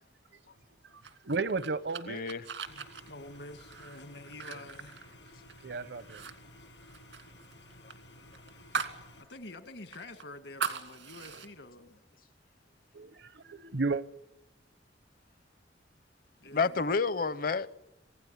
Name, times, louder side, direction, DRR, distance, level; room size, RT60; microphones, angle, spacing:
voice 1, 0.5-1.0 2.7-5.5 6.4-6.5 7.5-7.6 9.2-12.0 16.4-16.8, left 2 dB, 75° left, 2.0 m, -48 dB
sound 1, 1.0-5.6 6.0-6.3 6.6-9.0 9.4-9.5 9.9-11.5, right 5 dB, 90° right, 2.2 m, -39 dB
voice 2, 1.2-2.2 5.6-6.2 12.9-14.0, right 3 dB, 70° right, 0.9 m, -33 dB
voice 3, 2.1-2.5 16.5-17.7, left 4 dB, 55° left, 0.8 m, -29 dB
sound 2, 2.6-9.2, left 1 dB, 90° left, 8.0 m, -54 dB
26.5 x 17.0 x 10.0 m
head